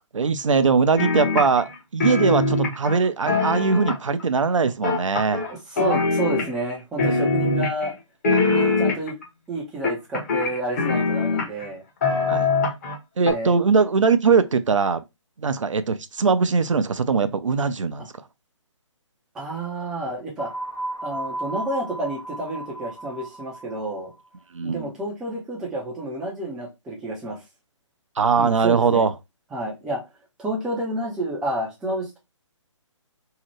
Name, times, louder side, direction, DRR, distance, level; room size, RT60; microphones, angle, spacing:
voice 1, 0.1-5.4 8.3-8.8 12.3-12.5 13.2-15.0 15.4-18.1 24.5-24.9 28.2-29.1, right 5 dB, 75° right, 0.4 m, -21 dB
sound 1, 1.0-1.8 2.0-4.2 4.8-5.5 5.8-6.7 7.0-7.9 8.2-9.2 9.8-11.7 12.0-13.0 13.3-13.4, left 3 dB, 30° left, 0.8 m, -22 dB
voice 2, 5.5-7.9 8.5-9.1 9.5-11.8 13.2-13.5 18.0-18.1 19.3-20.5 21.0-24.1 24.6-27.4 28.4-29.0 29.5-30.0 30.4-32.2, right 1 dB, 5° right, 0.4 m, -30 dB
sound 2, 20.4-24.0, right 2 dB, 65° left, 1.2 m, -34 dB
2.7 x 2.0 x 3.1 m
figure-of-eight pair, 140°, 16 cm